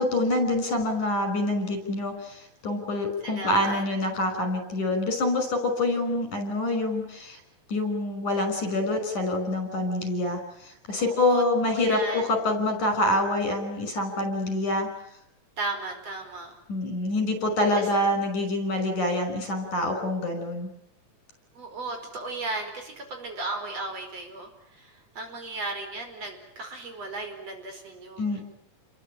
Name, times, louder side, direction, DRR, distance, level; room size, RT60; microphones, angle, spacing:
voice 1, 0.0-7.4 7.7-14.9 16.7-20.7 28.2-28.4, left 1 dB, 75° left, 7 dB, 7.2 m, -26 dB
voice 2, 3.2-3.8 11.0-12.3 15.6-16.5 17.8-17.9 21.5-28.4, right 2 dB, 55° right, 5 dB, 5.9 m, -36 dB
30.0 x 22.0 x 9.0 m, 0.78 s
omnidirectional pair, 3.5 m